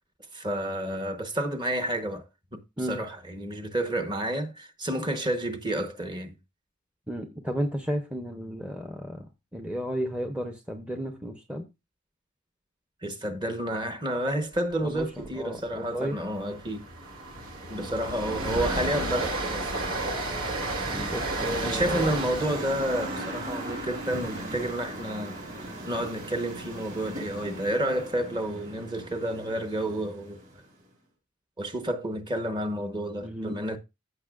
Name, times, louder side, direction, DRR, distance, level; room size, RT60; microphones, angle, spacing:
voice 1, 0.3-2.3 2.5-2.6 2.9-6.3 13.0-16.8 17.7-20.0 21.6-30.4 31.6-33.8, right 1 dB, 20° right, 1.0 m, -30 dB
voice 2, 7.1-9.3 9.5-11.7 14.8-16.2 20.9-21.9 33.2-33.6, equal, 5° right, 0.7 m, -33 dB
Train, 15.0-15.3 15.5-15.7 16.1-26.2, right 2 dB, 80° right, 2.6 m, -33 dB
sound 1, 16.3-30.8, right 1 dB, 40° right, 4.9 m, -40 dB
15.0 x 5.8 x 2.4 m
head